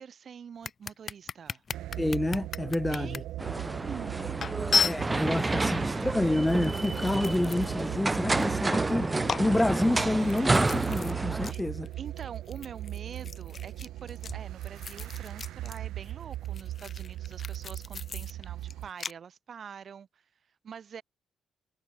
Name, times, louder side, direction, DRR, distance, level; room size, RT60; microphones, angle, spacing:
voice 1, 0.0-1.6 2.9-3.5 3.9-4.6 5.2-6.0 11.4-11.6 12.0-20.2 20.6-21.0, right 7 dB, 50° right, 3.3 m, -45 dB
sound 1, 0.6-3.2 3.8-3.9 4.4-5.5 6.2-7.9 8.2-8.9 9.3-11.1 11.4-11.6 11.9-15.8 16.0-19.1, left 6 dB, 45° left, 1.0 m, -34 dB
sound 2, 1.7-18.9, right 14 dB, 85° right, 1.2 m, -38 dB
voice 2, 2.0-3.2 4.8-9.1 9.4-11.9, left 1 dB, 10° left, 0.9 m, -28 dB
sound 3, 3.4-11.5, right 2 dB, 20° right, 0.4 m, -30 dB
cardioid pair, 90°, 0 cm